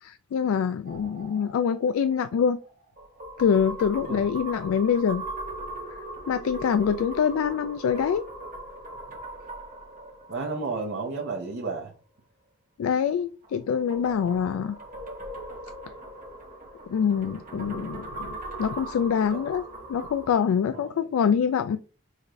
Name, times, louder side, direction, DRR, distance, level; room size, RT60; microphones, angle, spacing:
voice 1, 0.0-2.6 3.4-5.2 6.3-8.2 12.8-14.8 16.9-19.6 19.9-21.8, left 7 dB, 85° left, 0.3 m, -25 dB
sound 1, 0.9-11.5 13.4-20.3, right 1 dB, 40° right, 1.2 m, -40 dB
voice 2, 10.3-11.9 17.3-18.0 19.3-19.4 20.6-21.1, right 3 dB, 60° right, 0.8 m, -33 dB
6.4 x 2.6 x 3.1 m
head